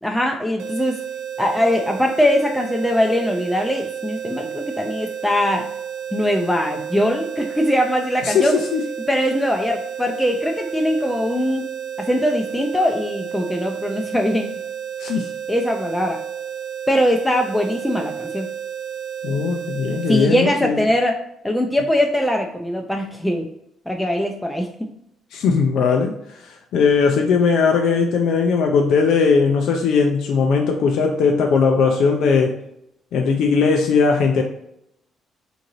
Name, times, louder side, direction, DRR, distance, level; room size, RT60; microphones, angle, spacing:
voice 1, 0.0-1.0 1.4-5.7 6.1-8.6 9.1-11.6 12.0-14.6 15.5-16.2 16.9-18.5 20.1-21.2 21.4-23.5 23.9-24.9, equal, 5° left, 1 dB, 0.4 m, -21 dB
sound 1, 0.6-20.3, right 9 dB, 80° right, 0.4 m, -31 dB
voice 2, 8.2-8.8 15.0-15.3 19.2-20.8 25.3-26.1 26.4-32.6 33.1-34.4, left 5 dB, 80° left, 2 dB, 0.4 m, -18 dB
3.7 x 2.6 x 3.0 m, 0.78 s
cardioid pair, 90°, 0 cm